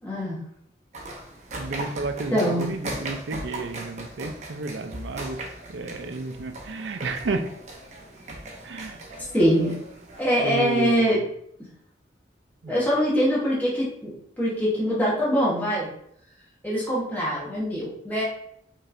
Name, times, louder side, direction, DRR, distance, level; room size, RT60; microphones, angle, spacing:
voice 1, 0.0-0.3 2.3-2.6 9.3-9.8 10.2-11.2 12.6-15.9 16.6-18.3, equal, 10° left, -7 dB, 1.1 m, -23 dB
sound 1, 0.9-11.0, right 1 dB, 40° right, 0.7 m, -38 dB
voice 2, 1.6-5.4 5.7-7.4 8.6-9.0 10.4-11.2 12.6-12.9, right 3 dB, 85° right, 7 dB, 0.5 m, -32 dB
5.2 x 3.2 x 2.5 m, 0.70 s
head